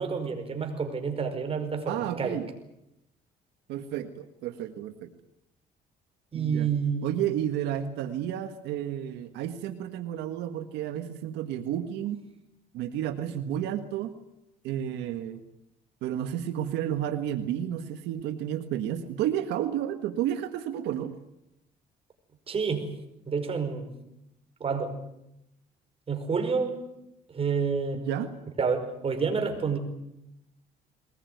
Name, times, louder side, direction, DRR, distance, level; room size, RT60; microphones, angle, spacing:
voice 1, 0.0-2.4 6.3-7.2 22.5-22.9 23.3-23.9 24.6-24.9 26.1-26.8 27.3-28.0 28.6-29.8, right 5 dB, 35° right, 6 dB, 5.2 m, -29 dB
voice 2, 1.9-2.5 3.7-5.1 6.3-6.7 7.0-12.2 12.7-14.1 14.6-15.4 16.0-21.1 28.0-28.3, right 11 dB, 85° right, 7 dB, 1.7 m, -31 dB
22.0 x 20.5 x 9.4 m, 0.86 s
cardioid pair, 110°, 17 cm